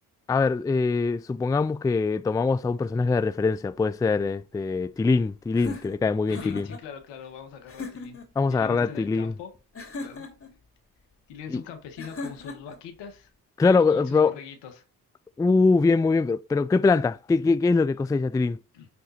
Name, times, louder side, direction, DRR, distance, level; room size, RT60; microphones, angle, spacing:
voice 1, 0.3-6.7 8.4-9.3 11.5-11.6 13.6-14.3 15.4-18.6, left 4 dB, 10° left, 0.3 m, -23 dB
sound 1, 5.5-6.8 7.7-8.3 9.8-10.5 12.0-12.8, left 3 dB, 30° left, 2.8 m, -38 dB
voice 2, 6.3-8.2 8.5-9.5 10.0-10.3 11.3-13.3 13.6-14.8 18.7-18.9, left 7 dB, 80° left, 1.6 m, -41 dB
10.0 x 3.9 x 4.2 m
supercardioid pair, 50°, 41 cm